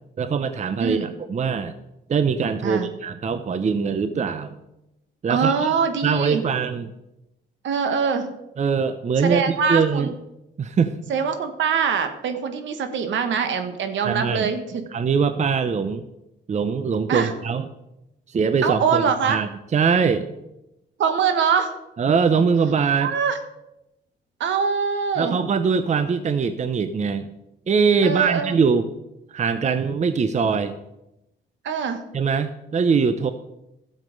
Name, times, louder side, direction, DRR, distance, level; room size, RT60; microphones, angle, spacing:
voice 1, 0.2-1.7 2.1-4.6 5.2-5.7 6.0-6.9 8.6-10.1 10.6-11.0 14.0-14.5 14.9-16.0 16.5-17.6 18.3-20.3 22.0-23.1 25.2-27.3 27.7-28.9 29.3-30.8 32.1-33.3, right 5 dB, 35° right, 11 dB, 0.7 m, -22 dB
voice 2, 0.8-1.1 2.6-2.9 5.3-6.4 7.6-8.3 9.2-10.1 11.1-14.8 17.1-17.3 18.6-19.4 21.0-21.7 23.0-23.4 24.4-25.4 28.0-28.6 31.6-32.0, right 6 dB, 70° right, 8 dB, 1.4 m, -23 dB
12.5 x 7.4 x 5.3 m, 0.89 s
cardioid pair, 90°, 20 cm